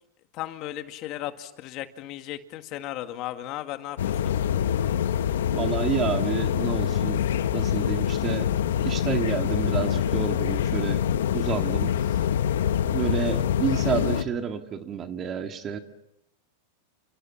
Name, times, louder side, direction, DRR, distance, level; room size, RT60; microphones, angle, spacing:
voice 1, 0.3-4.3, left 14 dB, 45° left, 8 dB, 1.9 m, -35 dB
sound 1, 4.0-14.2, left 9 dB, 85° left, 1.4 m, -25 dB
voice 2, 5.5-7.2 7.5-8.5 8.8-11.1 11.3-12.2 12.9-15.8, right 7 dB, 30° right, 6 dB, 2.0 m, -29 dB
29.5 x 29.0 x 5.8 m, 0.80 s
supercardioid pair, 135°, 0 cm